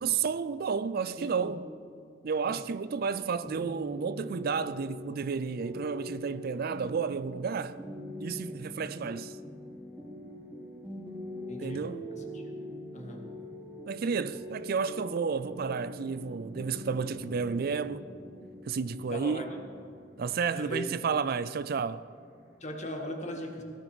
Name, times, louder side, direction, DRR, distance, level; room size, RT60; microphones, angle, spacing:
voice 1, 0.0-1.7 2.2-7.8 8.2-9.3 11.6-12.0 13.9-18.1 18.7-19.4 20.2-22.0, right 5 dB, 50° right, 0.4 m, -31 dB
voice 2, 1.2-1.5 2.4-2.6 11.5-11.8 12.1-12.4 12.9-13.2 19.1-19.5 20.5-20.9 22.6-23.6, left 1 dB, 40° left, 1.9 m, -38 dB
sound 1, 3.4-23.0, equal, 10° right, 3.0 m, -43 dB
18.0 x 13.0 x 5.0 m
head